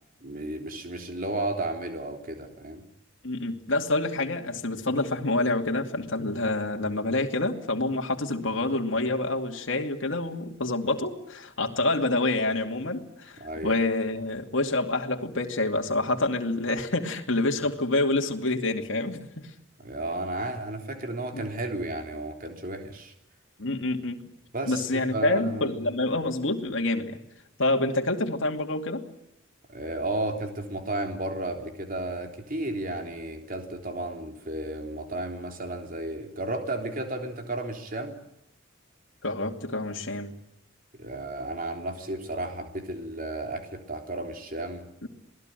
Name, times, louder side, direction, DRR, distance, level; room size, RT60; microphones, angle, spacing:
voice 1, 0.2-2.8 13.4-13.7 19.8-23.1 24.5-25.8 29.7-38.2 41.0-44.9, right 2 dB, 45° right, 4 dB, 3.5 m, -33 dB
voice 2, 3.2-19.2 21.3-21.4 23.6-24.2 24.7-27.2 27.6-29.0 39.2-40.3 45.0-45.1, left 2 dB, 65° left, 2 dB, 2.6 m, -27 dB
28.0 x 19.5 x 9.2 m, 0.81 s
head